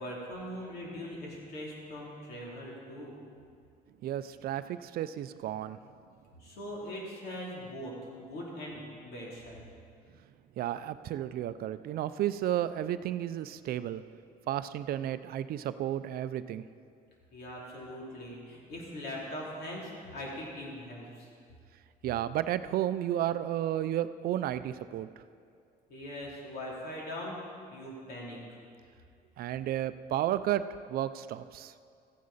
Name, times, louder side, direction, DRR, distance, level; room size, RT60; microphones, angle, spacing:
voice 1, 0.0-3.1 6.4-9.6 17.3-21.3 25.9-27.4 27.7-28.4, equal, 70° left, -4 dB, 3.2 m, -41 dB
voice 2, 4.0-5.8 10.6-14.0 14.5-16.6 22.0-25.1 29.4-30.6 30.9-31.7, right 12 dB, 65° right, 13 dB, 0.4 m, -32 dB
14.0 x 9.5 x 4.1 m, 2.3 s
cardioid pair, 110°, 17 cm